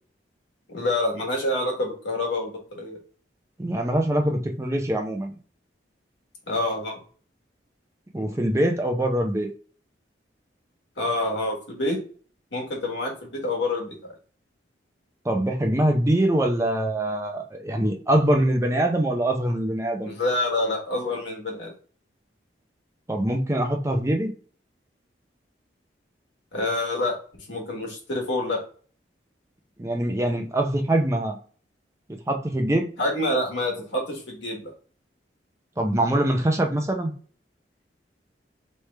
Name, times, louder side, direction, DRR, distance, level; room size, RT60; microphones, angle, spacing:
voice 1, 0.7-3.0 6.5-7.0 11.0-12.0 12.5-14.0 20.0-21.7 26.5-27.1 27.5-28.6 33.0-34.7, left 1 dB, 80° left, -1 dB, 1.5 m, -27 dB
voice 2, 3.6-5.3 8.1-9.5 15.2-20.1 23.1-24.3 29.8-31.4 32.3-32.9 35.8-37.1, right 1 dB, 15° right, 3 dB, 0.6 m, -23 dB
3.5 x 3.2 x 3.2 m, 0.42 s
head